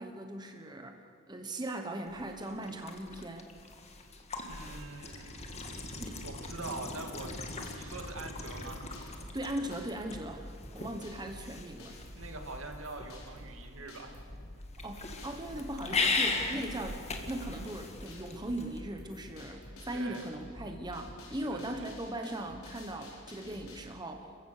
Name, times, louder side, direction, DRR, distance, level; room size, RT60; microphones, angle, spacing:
voice 1, 0.0-3.5 6.0-6.2 9.3-12.0 14.8-24.3, right 1 dB, 20° right, 4 dB, 1.2 m, -39 dB
sound 1, 2.1-18.8, left 3 dB, 30° left, 1.9 m, -39 dB
voice 2, 4.5-5.3 6.2-7.4 7.7-8.8 12.1-14.2 19.9-20.3 21.3-21.9, right 3 dB, 70° right, 4 dB, 2.3 m, -44 dB
sound 2, 7.1-23.8, left 1 dB, 85° left, 4.7 m, -50 dB
29.5 x 15.5 x 6.7 m, 2.3 s
head